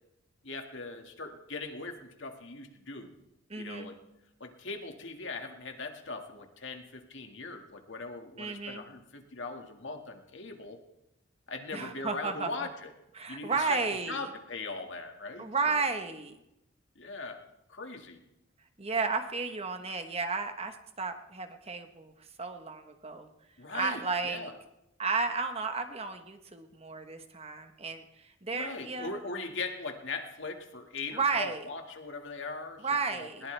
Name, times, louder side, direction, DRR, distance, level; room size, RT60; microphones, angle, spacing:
voice 1, 0.4-3.2 3.6-4.0 4.4-10.8 11.5-12.9 13.3-13.8 14.1-15.8 17.0-17.4 17.7-18.2 23.6-24.5 28.5-33.5, left 3 dB, 65° left, 4 dB, 2.0 m, -40 dB
voice 2, 3.5-3.9 8.4-8.8 11.7-12.5 13.2-14.3 15.4-16.4 18.8-22.1 22.4-23.3 23.7-24.5 25.0-28.0 28.4-29.1 31.1-31.7 32.8-33.4, right 4 dB, 30° right, 7 dB, 1.2 m, -33 dB
21.0 x 18.5 x 3.4 m, 0.86 s
head